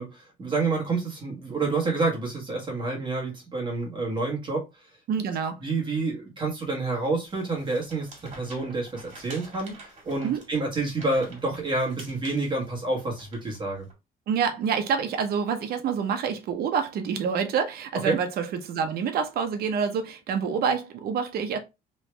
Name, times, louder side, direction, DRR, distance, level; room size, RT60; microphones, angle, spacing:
voice 1, 0.0-4.6 5.6-8.1 8.3-13.9 18.0-18.1, right 3 dB, 30° right, 1.4 m, -28 dB
voice 2, 5.1-5.6 10.2-10.4 14.3-21.6, right 6 dB, 65° right, 0.9 m, -27 dB
sound 1, 7.2-13.9, right 2 dB, 45° right, 1.8 m, -48 dB
3.2 x 2.7 x 3.3 m
cardioid pair, 110°, 17 cm